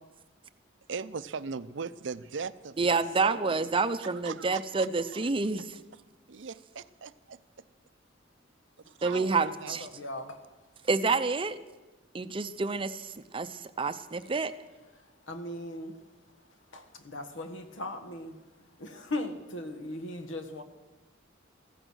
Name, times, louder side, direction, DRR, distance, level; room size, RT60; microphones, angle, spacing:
voice 1, 0.9-3.6 4.2-4.9 5.1-5.3 6.3-7.4 8.9-9.8, right 5 dB, 70° right, 14 dB, 0.6 m, -39 dB
voice 2, 2.8-5.8 9.0-9.9 10.9-11.6 12.1-14.5, right 4 dB, 25° right, 11 dB, 0.6 m, -28 dB
voice 3, 9.7-10.4 15.3-16.0 16.7-18.3 18.8-20.6, left 1 dB, 80° left, 8 dB, 1.5 m, -38 dB
15.5 x 14.0 x 6.3 m, 1.1 s
head